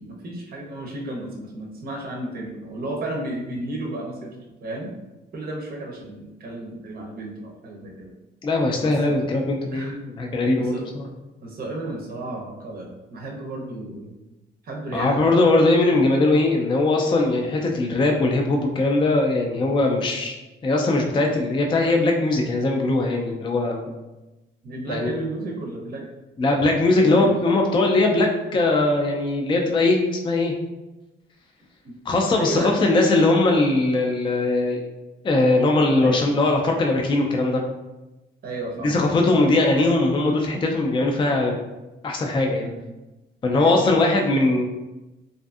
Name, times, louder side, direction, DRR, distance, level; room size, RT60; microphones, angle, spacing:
voice 1, 0.0-4.3 4.6-4.9 5.3-8.1 8.8-8.9 9.7-9.9 10.6-10.8 11.4-14.2 14.6-15.2 24.6-26.1 26.9-27.4 31.8-32.0 32.4-32.8 35.9-36.2 38.4-39.4 42.5-42.8 43.5-43.8, right 2 dB, 50° right, -1 dB, 0.6 m, -33 dB
voice 2, 8.4-11.1 14.9-20.3 20.6-23.9 24.9-25.1 26.4-30.5 32.1-34.8 35.2-37.6 38.8-41.5 42.0-42.7 43.4-44.7, left 2 dB, 25° left, 1 dB, 0.4 m, -20 dB
2.5 x 2.5 x 2.3 m, 1.0 s
cardioid pair, 90°, 20 cm